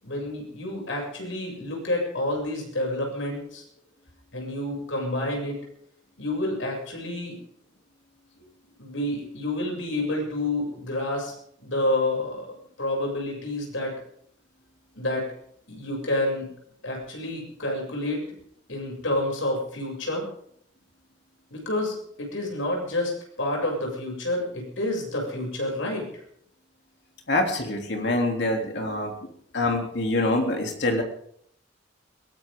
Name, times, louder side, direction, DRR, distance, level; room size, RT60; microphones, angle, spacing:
voice 1, 0.0-3.6 4.3-5.6 6.2-7.4 8.8-11.3 11.6-12.5 12.8-14.0 15.0-15.2 15.7-16.5 16.8-18.2 18.7-20.3 21.5-23.1 23.4-26.1, left 1 dB, 85° left, 1 dB, 7.2 m, -29 dB
voice 2, 27.3-29.1 29.5-31.0, left 2 dB, 60° left, 2 dB, 3.1 m, -25 dB
22.0 x 17.5 x 3.8 m, 0.67 s
head